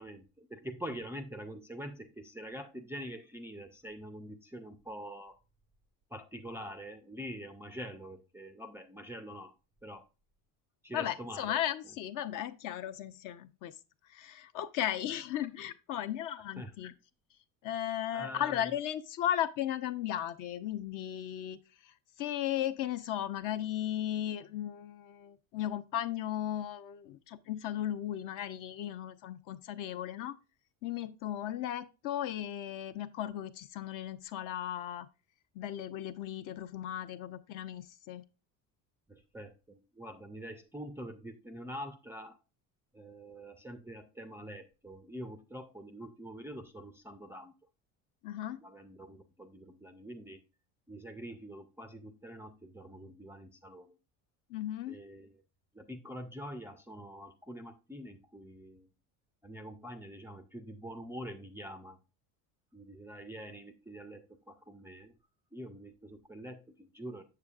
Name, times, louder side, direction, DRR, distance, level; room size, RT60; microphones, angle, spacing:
voice 1, 0.0-5.4 6.1-9.5 9.8-10.0 10.8-11.6 16.6-16.7 18.1-18.7 39.1-42.4 42.9-47.5 48.6-50.4 50.9-54.0 54.9-55.4 55.7-58.9 59.4-62.0 62.7-65.1 65.5-67.2, equal, 5° right, 0.3 m, -45 dB
voice 2, 10.9-13.7 14.1-16.9 17.6-30.4 30.8-35.1 35.5-38.2 48.2-48.6 54.5-55.0, left 11 dB, 55° left, 0.6 m, -36 dB
6.7 x 6.7 x 2.3 m
cardioid pair, 120°, 38 cm